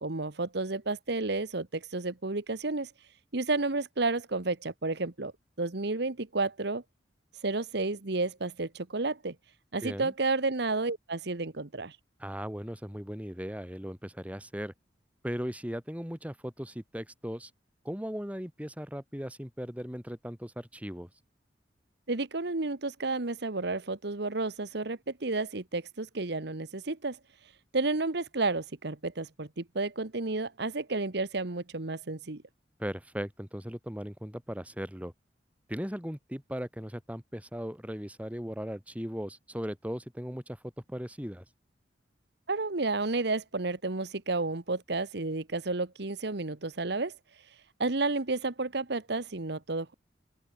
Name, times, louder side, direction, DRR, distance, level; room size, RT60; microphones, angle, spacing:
voice 1, 0.0-2.9 3.3-5.3 5.6-6.8 7.4-9.3 9.7-12.0 22.1-27.2 27.7-32.4 42.5-47.1 47.8-49.9, right 3 dB, 65° right, 1.4 m, -31 dB
voice 2, 9.8-10.1 12.2-14.7 15.2-17.5 17.8-21.1 32.8-35.1 35.7-40.6 40.9-41.4, equal, 10° right, 4.8 m, -38 dB
open air
head